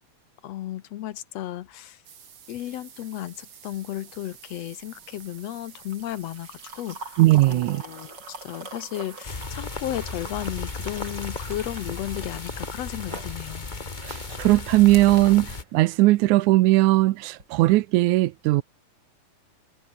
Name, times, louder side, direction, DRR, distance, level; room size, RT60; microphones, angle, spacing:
voice 1, 0.4-2.0 2.5-7.2 7.5-13.8, left 13 dB, 70° left, 1.9 m, -34 dB
sound 1, 2.0-14.1 14.3-14.4 14.7-14.8 15.1-15.2 15.5-15.6 15.7-15.8 16.1-16.2 16.6-16.7, right 8 dB, 65° right, 3.4 m, -50 dB
sound 2, 3.7-16.0 17.3-17.5, right 3 dB, 35° right, 6.1 m, -45 dB
voice 2, 7.2-7.8 14.0-18.6, right 18 dB, 90° right, 2.1 m, -19 dB
sound 3, 9.2-15.6, left 3 dB, 25° left, 1.0 m, -35 dB
omnidirectional pair, 3.4 m